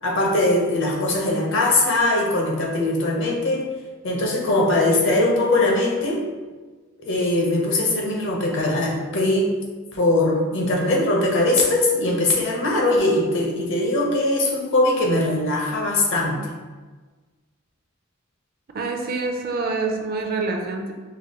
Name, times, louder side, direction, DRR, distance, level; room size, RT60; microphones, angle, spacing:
voice 1, 0.0-3.7 4.0-6.2 7.0-9.5 9.9-16.4, left 2 dB, 60° left, -1 dB, 0.8 m, -21 dB
voice 2, 18.7-20.9, right 3 dB, 45° right, 2 dB, 0.5 m, -26 dB
5.1 x 2.6 x 2.9 m, 1.3 s
head